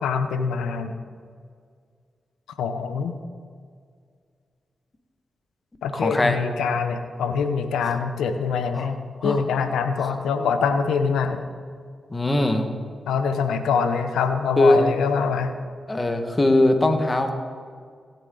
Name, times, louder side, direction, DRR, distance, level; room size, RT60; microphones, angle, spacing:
voice 1, 0.0-1.0 2.6-3.2 5.8-11.4 13.1-15.5, left 5 dB, 90° left, 8 dB, 0.7 m, -24 dB
voice 2, 5.9-6.4 7.8-7.9 8.7-8.9 9.2-9.4 10.0-10.1 12.1-12.6 14.6-14.8 15.9-17.3, left 2 dB, 30° left, 5 dB, 1.6 m, -20 dB
16.5 x 8.8 x 3.9 m, 2.1 s
supercardioid pair, 45°, 0 cm